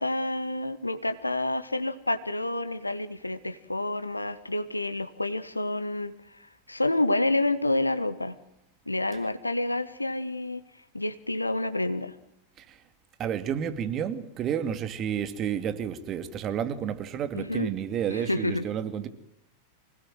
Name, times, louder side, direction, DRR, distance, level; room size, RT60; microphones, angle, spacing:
voice 1, 0.0-6.1 6.7-8.3 8.9-10.6 10.9-12.1 17.4-17.7 18.1-18.6, left 2 dB, 85° left, 1.3 m, -28 dB
voice 2, 13.2-19.1, right 8 dB, 30° right, 2.4 m, -30 dB
25.5 x 19.0 x 7.8 m
figure-of-eight pair, 90°, 0 cm